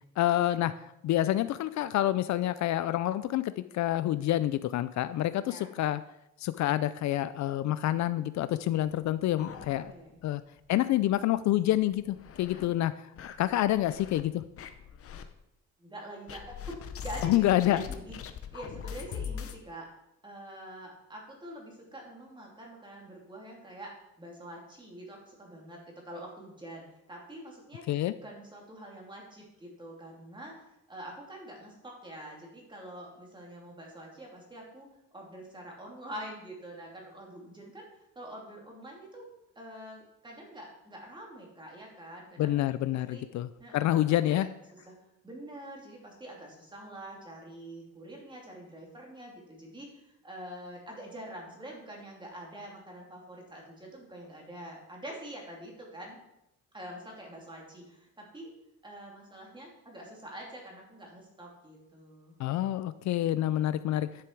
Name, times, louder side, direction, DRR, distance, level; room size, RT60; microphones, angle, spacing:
voice 1, 0.2-0.7 1.0-6.0 6.4-9.9 10.2-10.4 10.7-12.9 13.4-14.4 17.2-17.8 27.9-28.1 42.4-44.5 62.4-64.1, left 13 dB, 65° left, 14 dB, 0.4 m, -27 dB
sound 1, 9.2-10.2 10.6-10.7 11.0-11.1 11.7-12.7 13.2-14.2 14.6-15.2 16.3-19.6, left 8 dB, 45° left, 0.8 m, -42 dB
voice 2, 9.4-10.2 12.5-12.8 15.8-18.2 18.5-19.9 20.2-27.9 28.2-34.9 35.1-37.9 38.1-39.2 39.5-42.5 42.9-43.2 43.6-45.0 45.2-56.2 56.7-58.5 58.8-62.4, right 1 dB, 15° right, -1 dB, 2.8 m, -46 dB
11.0 x 6.8 x 4.6 m, 0.84 s
cardioid pair, 135°, 31 cm